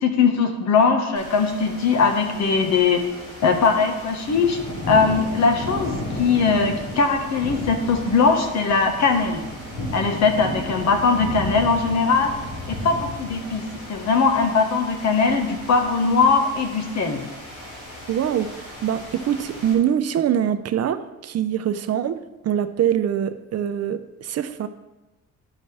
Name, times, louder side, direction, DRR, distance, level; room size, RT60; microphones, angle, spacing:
voice 1, 0.0-3.0 3.4-4.6 4.9-9.4 9.9-12.3 12.7-17.2, left 4 dB, 65° left, 5 dB, 1.4 m, -20 dB
sound 1, 1.1-19.7, left 1 dB, 80° left, 3.3 m, -34 dB
voice 2, 18.1-22.2 22.4-24.7, right 9 dB, 55° right, 10 dB, 0.6 m, -24 dB
11.5 x 6.4 x 3.4 m, 1.1 s
cardioid pair, 90°, 30 cm